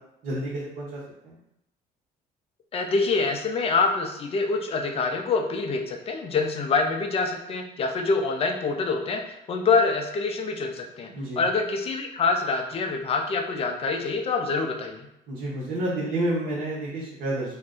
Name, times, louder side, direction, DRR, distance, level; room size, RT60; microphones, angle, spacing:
voice 1, 0.2-1.4 11.1-11.5 15.3-17.5, right 1 dB, 60° right, -7 dB, 0.9 m, -30 dB
voice 2, 2.7-11.1 11.4-15.1, left 4 dB, 35° left, 3 dB, 0.5 m, -25 dB
2.5 x 2.2 x 3.6 m, 0.85 s
cardioid pair, 110°, 17 cm